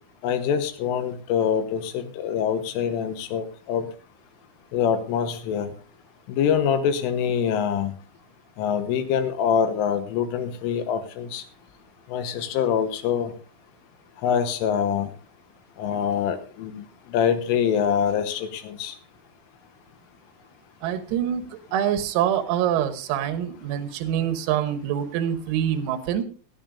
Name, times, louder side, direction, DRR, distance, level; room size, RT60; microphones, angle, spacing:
voice 1, 0.2-3.9 4.7-5.7 6.3-7.9 8.6-11.4 12.1-13.3 14.2-15.1 15.8-19.0, left 8 dB, 80° left, 9 dB, 3.6 m, -25 dB
voice 2, 20.8-26.2, right 10 dB, 90° right, 10 dB, 3.9 m, -25 dB
19.0 x 13.0 x 2.6 m, 0.38 s
omnidirectional pair, 5.9 m